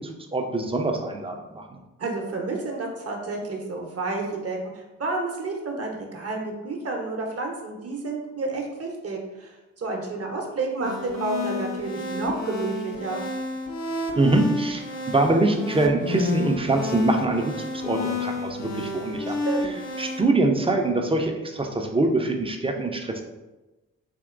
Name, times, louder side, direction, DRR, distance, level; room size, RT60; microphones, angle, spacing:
voice 1, 0.0-1.8 14.2-19.4 20.0-23.2, right 2 dB, 15° right, 3 dB, 0.5 m, -24 dB
voice 2, 2.0-13.2 19.3-19.8, right 3 dB, 40° right, 1 dB, 0.9 m, -30 dB
sound 1, 10.8-20.2, left 2 dB, 50° left, 0.7 m, -30 dB
3.5 x 2.8 x 2.5 m, 1.1 s
hypercardioid pair, 40°, 35 cm